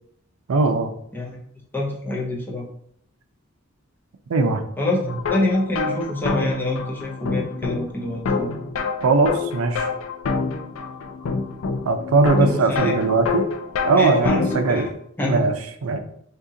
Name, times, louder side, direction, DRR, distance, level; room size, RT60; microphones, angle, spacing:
voice 1, 0.5-0.9 4.3-4.6 9.0-9.9 11.8-13.5 13.8-14.9 15.2-15.5 15.8-16.0, right 3 dB, 90° right, 7 dB, 0.4 m, -19 dB
voice 2, 1.7-2.6 4.8-8.5 12.4-12.9 14.0-14.9 15.2-15.4, left 1 dB, 10° left, -2 dB, 0.6 m, -26 dB
sound 1, 5.1-14.9, left 4 dB, 80° left, 0.4 m, -27 dB
2.8 x 2.7 x 3.6 m, 0.68 s
head